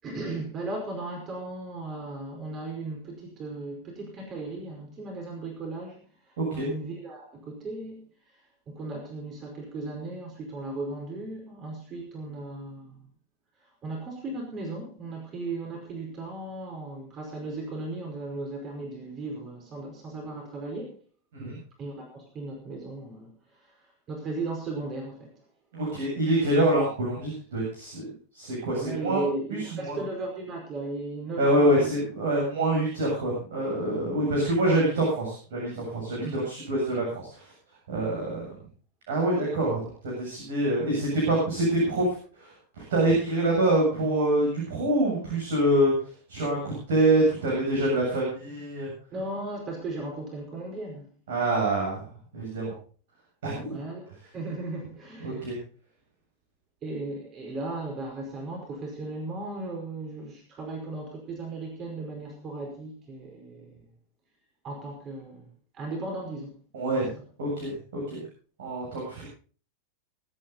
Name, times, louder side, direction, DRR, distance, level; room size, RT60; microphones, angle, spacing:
voice 1, 0.0-6.0 6.5-8.0 8.7-13.1 13.8-21.0 21.8-23.3 23.6-23.7 24.1-25.3 28.7-31.9 34.6-34.8 36.2-36.4 49.1-51.1 53.6-55.5 56.8-63.8 64.6-65.5 65.7-66.5 66.9-67.1, right 2 dB, 30° right, 1 dB, 4.9 m, -36 dB
voice 2, 6.4-6.7 21.3-21.6 25.7-29.2 29.5-30.0 31.4-37.5 37.9-38.5 39.1-42.1 42.4-42.5 42.9-45.9 46.3-48.9 51.3-52.1 52.3-52.7 53.4-53.8 55.2-55.6 66.7-67.1 67.4-68.2 68.6-69.3, right 1 dB, 60° right, -3 dB, 7.5 m, -26 dB
23.5 x 9.1 x 4.0 m, 0.41 s
figure-of-eight pair, 90°, 0 cm